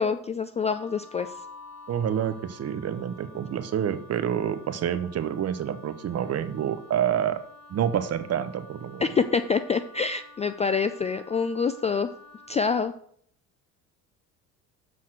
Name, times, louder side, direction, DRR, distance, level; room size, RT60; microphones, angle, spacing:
voice 1, 0.0-1.3 9.0-12.1 12.5-12.9, left 5 dB, 20° left, 11 dB, 0.3 m, -26 dB
Wind instrument woodwind instrument, 0.6-12.6, left 2 dB, 80° left, 1.5 m, -51 dB
Keyboard (musical), 1.2-3.7, left 4 dB, 50° left, 1.1 m, -48 dB
voice 2, 1.9-7.4 7.7-9.1, right 9 dB, 40° right, 12 dB, 0.9 m, -28 dB
6.4 x 5.7 x 5.9 m, 0.63 s
supercardioid pair, 80°, 40 cm